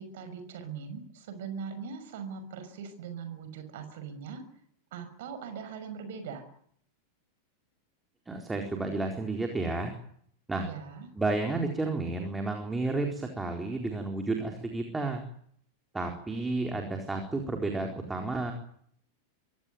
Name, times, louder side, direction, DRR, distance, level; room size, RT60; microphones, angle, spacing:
voice 1, 0.0-4.4 4.9-6.5 10.6-11.1, right 6 dB, 55° right, 9 dB, 6.0 m, -40 dB
voice 2, 8.3-9.9 10.5-10.7 11.2-15.2 15.9-18.5, right 3 dB, 10° right, 3 dB, 4.1 m, -31 dB
25.5 x 17.0 x 9.5 m, 0.65 s
figure-of-eight pair, 90°, 0 cm